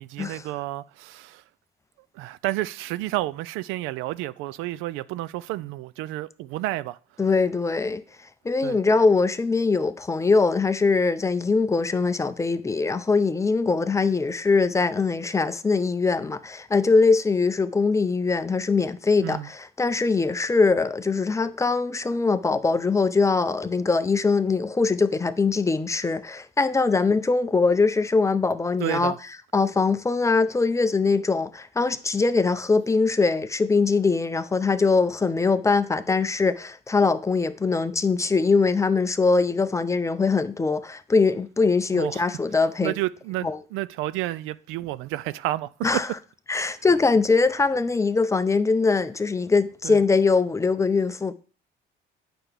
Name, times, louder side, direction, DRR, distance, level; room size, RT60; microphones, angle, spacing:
voice 1, 0.0-1.4 2.1-7.0 8.6-8.8 19.2-19.5 28.8-29.2 41.9-42.2 42.8-45.7 49.8-50.0, right 16 dB, 85° right, 0.4 m, -30 dB
voice 2, 7.2-8.0 8.4-29.1 29.5-42.9 43.4-43.6 45.8-46.1 46.5-51.3, left 4 dB, 15° left, 0.5 m, -22 dB
9.0 x 5.9 x 3.4 m
cardioid pair, 115°, 20 cm